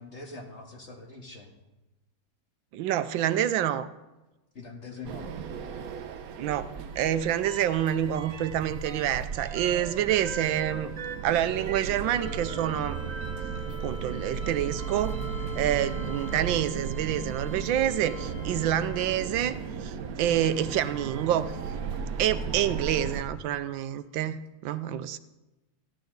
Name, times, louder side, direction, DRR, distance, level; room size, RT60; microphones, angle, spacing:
voice 1, 0.0-1.5 4.5-5.3, left 3 dB, 35° left, 1 dB, 2.1 m, -43 dB
voice 2, 2.7-3.9 6.4-6.7 7.0-10.9 11.2-13.0 13.8-15.2 15.5-21.5 22.2-25.2, right 11 dB, 80° right, 13 dB, 1.4 m, -27 dB
sound 1, 5.0-23.2, right 6 dB, 60° right, 1.1 m, -36 dB
sound 2, 7.4-8.5 8.8-19.6 20.5-22.0 23.8-23.9, right 3 dB, 45° right, 2.2 m, -42 dB
15.0 x 11.5 x 3.9 m, 1.0 s
omnidirectional pair, 2.1 m